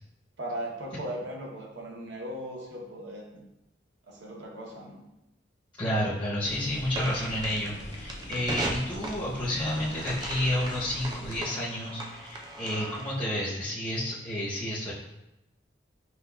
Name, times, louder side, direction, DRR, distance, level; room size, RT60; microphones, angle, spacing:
voice 1, 0.4-3.4 4.1-5.0, right 1 dB, 75° right, -1 dB, 0.7 m, -38 dB
voice 2, 5.8-14.9, left 1 dB, 25° left, -10 dB, 0.7 m, -30 dB
sound 1, 6.4-11.4, left 1 dB, 70° left, 0.6 m, -43 dB
sound 2, 6.9-13.3, right 1 dB, 20° right, 0.3 m, -38 dB
5.5 x 2.2 x 2.2 m, 0.90 s
head